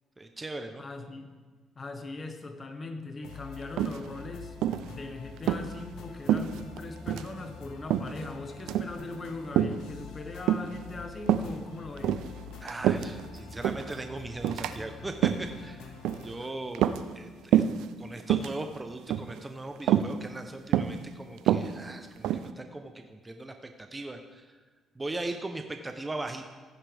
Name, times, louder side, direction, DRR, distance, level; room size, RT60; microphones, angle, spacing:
voice 1, 0.2-0.8 12.6-15.9 16.2-16.9 17.1-17.6 18.0-24.6 24.9-26.4, right 2 dB, 20° right, 6 dB, 0.8 m, -39 dB
voice 2, 0.8-1.4 1.7-4.6 4.8-12.2 16.4-16.5, left 2 dB, 35° left, 5 dB, 1.5 m, -40 dB
sound 1, 3.2-16.3, left 5 dB, 85° left, 1.2 m, -46 dB
sound 2, 3.8-4.3 4.6-4.9 5.4-5.7 6.3-6.8 7.1-7.3 7.9-8.2 8.6-8.9 9.6-9.8 10.5-10.8 11.3-11.5 12.0-13.2 13.6-13.9 14.4-14.7 15.1-15.5 16.0-16.3 16.7-17.3 17.5-17.8 18.2-18.5 19.1-19.4 19.9-20.1 20.7-21.0 21.4-22.5, right 11 dB, 85° right, 0.5 m, -26 dB
14.5 x 9.6 x 3.5 m, 1.5 s
cardioid pair, 95°, 0 cm